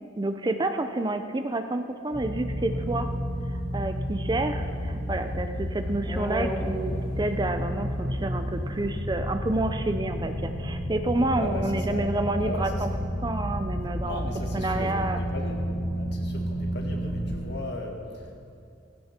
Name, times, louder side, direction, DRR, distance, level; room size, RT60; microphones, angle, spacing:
voice 1, 0.2-3.1 3.7-12.9 13.2-14.2 14.5-15.2, right 2 dB, 20° right, 8 dB, 0.6 m, -29 dB
sound 1, 2.1-17.4, equal, 40° right, 3.5 m, -31 dB
sound 2, 2.7-9.0, equal, 10° left, 1.0 m, -40 dB
voice 2, 11.3-12.1 12.4-13.0 14.0-15.6 15.9-18.3, left 1 dB, 60° left, 1 dB, 2.0 m, -37 dB
17.0 x 16.0 x 4.4 m, 2.5 s
head